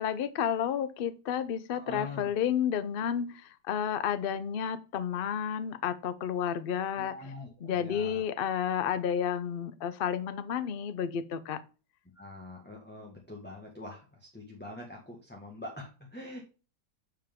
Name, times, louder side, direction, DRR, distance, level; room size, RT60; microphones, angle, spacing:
voice 1, 0.0-7.3 7.6-11.6, left 8 dB, 70° left, 13 dB, 0.5 m, -31 dB
voice 2, 1.7-2.3 6.9-8.2 12.2-16.4, left 2 dB, 5° left, -2 dB, 1.6 m, -44 dB
8.9 x 5.0 x 3.6 m, 0.34 s
omnidirectional pair, 1.8 m